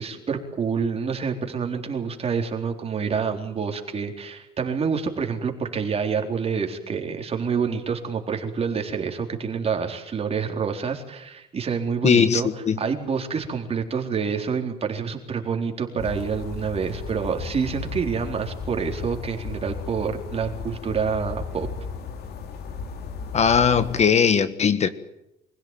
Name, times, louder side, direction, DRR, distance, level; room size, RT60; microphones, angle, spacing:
voice 1, 0.0-12.5 12.8-21.7, right 6 dB, 35° right, 4 dB, 4.1 m, -27 dB
voice 2, 12.0-12.8 23.3-24.9, left 7 dB, 40° left, 13 dB, 1.5 m, -19 dB
sound 1, 16.0-24.0, left 5 dB, 70° left, 3.4 m, -35 dB
25.0 x 16.5 x 9.2 m, 0.84 s
cardioid pair, 110°, 17 cm